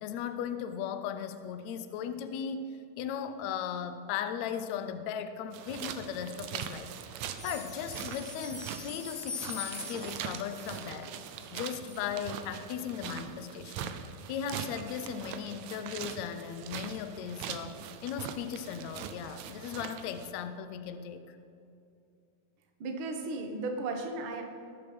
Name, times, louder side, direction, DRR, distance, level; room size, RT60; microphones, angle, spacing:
voice 1, 0.0-2.7 3.0-11.1 11.5-21.4, left 8 dB, 80° left, 9 dB, 1.6 m, -37 dB
sound 1, 5.5-20.3, right 9 dB, 85° right, 1.6 m, -42 dB
sound 2, 7.4-12.0 12.5-12.6 13.0-13.1 13.6-13.7, left 4 dB, 30° left, 1.1 m, -43 dB
voice 2, 22.8-24.4, right 3 dB, 60° right, 3 dB, 1.4 m, -35 dB
20.0 x 7.0 x 5.3 m, 2.6 s
omnidirectional pair, 4.1 m